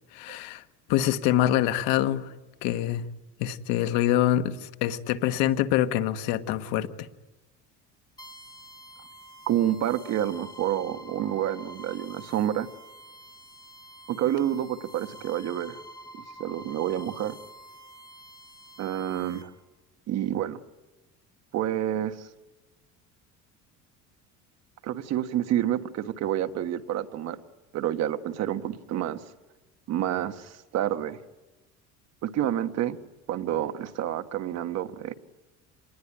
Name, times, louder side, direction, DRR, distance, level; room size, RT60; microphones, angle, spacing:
voice 1, 0.1-0.6 0.9-2.3 2.6-3.0 3.4-7.1, left 12 dB, 75° left, 1.5 m, -25 dB
sound 1, 8.2-19.4, right 1 dB, 10° left, 3.4 m, -47 dB
voice 2, 9.5-12.7 14.1-15.8 16.1-17.4 18.8-19.5 20.1-20.6 21.5-22.3 24.8-27.4 27.7-29.2 29.9-31.2 32.2-33.0 33.3-35.1, right 11 dB, 50° right, 1.4 m, -28 dB
27.0 x 20.5 x 9.9 m
cardioid pair, 155°, 34 cm